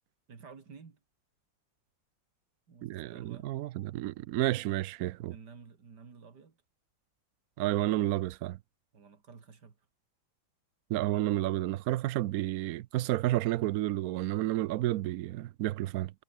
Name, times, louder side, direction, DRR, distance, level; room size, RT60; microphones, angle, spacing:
voice 1, 0.3-1.0 2.7-3.5 5.3-6.6 8.9-9.9, right 5 dB, 55° right, 3.1 m, -52 dB
voice 2, 2.8-5.3 7.6-8.6 10.9-16.1, right 15 dB, 80° right, 0.8 m, -31 dB
omnidirectional pair, 2.1 m